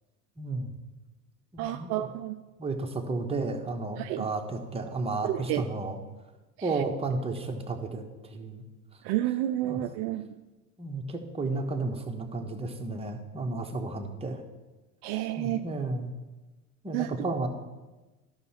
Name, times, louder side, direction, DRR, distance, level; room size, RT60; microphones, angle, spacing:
voice 1, 0.4-0.7 1.5-2.1 2.6-6.0 6.6-8.6 9.6-9.8 10.8-14.4 15.4-16.1 16.8-17.5, right 3 dB, 15° right, 2 dB, 1.3 m, -33 dB
voice 2, 1.6-2.4 4.0-4.3 5.2-5.6 6.6-6.7 9.0-10.3 15.0-15.6 16.9-17.1, right 14 dB, 60° right, 8 dB, 0.6 m, -30 dB
12.0 x 5.9 x 4.3 m, 1.2 s
hypercardioid pair, 80°, 42 cm